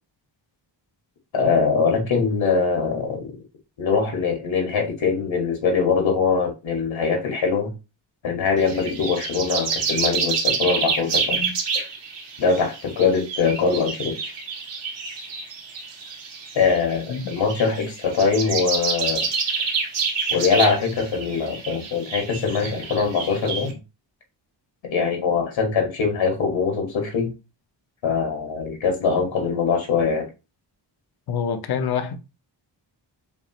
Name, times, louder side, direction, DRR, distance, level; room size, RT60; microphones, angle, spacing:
voice 1, 1.3-3.3 3.8-7.7 8.2-11.9 12.4-14.3 16.5-19.3 20.3-23.8 24.8-27.3 28.0-30.3, left 5 dB, 80° left, 2.0 m, -22 dB
sound 1, 8.6-23.7, right 5 dB, 70° right, 1.6 m, -28 dB
voice 2, 31.3-32.2, left 7 dB, 55° left, 0.7 m, -26 dB
6.8 x 2.5 x 3.0 m
wide cardioid pair, 165°, 45 cm